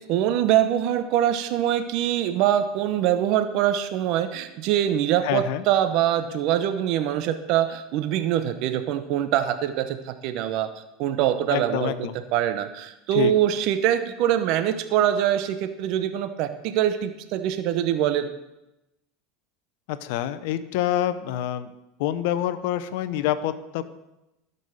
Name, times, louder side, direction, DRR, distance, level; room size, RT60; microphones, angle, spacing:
voice 1, 0.1-11.9 12.3-18.3, right 11 dB, 60° right, 9 dB, 0.8 m, -24 dB
voice 2, 5.2-5.6 11.5-12.2 13.1-13.3 19.9-21.7 22.0-23.8, left 12 dB, 70° left, 13 dB, 0.7 m, -26 dB
12.0 x 5.5 x 6.3 m, 0.94 s
supercardioid pair, 100°, 0 cm